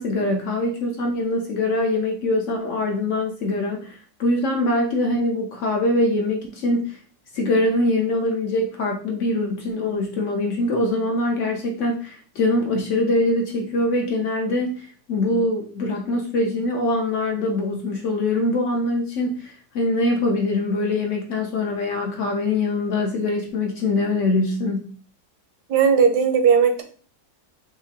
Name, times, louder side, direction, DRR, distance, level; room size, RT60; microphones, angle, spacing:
voice 1, 0.0-7.0 7.3-24.9, left 2 dB, 65° left, 2 dB, 0.7 m, -23 dB
voice 2, 25.7-26.8, right 6 dB, 85° right, 6 dB, 1.2 m, -17 dB
5.0 x 2.2 x 2.6 m, 0.42 s
omnidirectional pair, 1.7 m